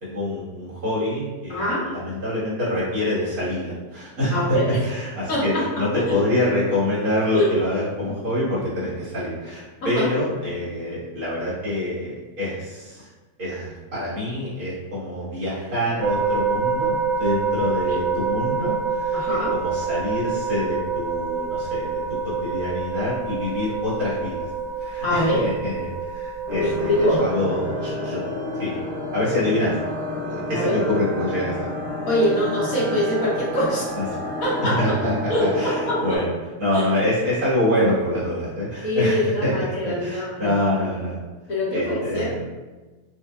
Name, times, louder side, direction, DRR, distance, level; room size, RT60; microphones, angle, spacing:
voice 1, 0.0-13.1 13.4-24.5 24.8-28.2 28.5-28.8 29.1-29.8 30.2-31.7 34.0-34.1 34.8-36.3 36.6-39.5 39.8-41.2 41.7-42.4, left 1 dB, 70° right, -10 dB, 2.0 m, -26 dB
voice 2, 1.5-1.9 4.3-4.8 5.3-5.7 5.9-6.2 7.3-7.5 9.8-10.1 17.9-18.0 19.1-19.5 25.0-25.5 26.6-27.2 30.5-30.7 32.1-33.9 34.4-34.7 35.3-36.2 36.7-36.8 38.8-40.5 41.5-42.3, equal, 65° left, -7 dB, 1.4 m, -23 dB
sound 1, 16.0-27.2, right 5 dB, 90° right, 1.2 m, -27 dB
sound 2, 26.5-36.2, left 1 dB, 45° right, 0.8 m, -30 dB
5.6 x 2.1 x 2.3 m, 1.2 s
omnidirectional pair, 1.7 m